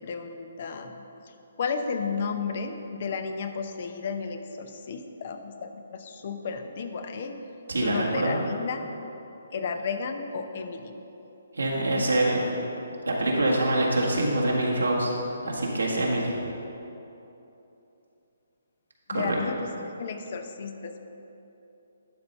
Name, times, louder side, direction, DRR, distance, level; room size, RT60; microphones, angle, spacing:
voice 1, 0.0-7.3 7.7-8.9 9.5-10.9 11.9-12.1 19.1-21.1, left 5 dB, 50° left, 7 dB, 0.7 m, -33 dB
voice 2, 7.7-8.4 11.5-12.5 13.0-15.1 15.4-16.3 19.1-19.4, right 1 dB, 90° right, -3 dB, 1.7 m, -25 dB
11.5 x 4.1 x 5.6 m, 3.0 s
figure-of-eight pair, 145°, 0 cm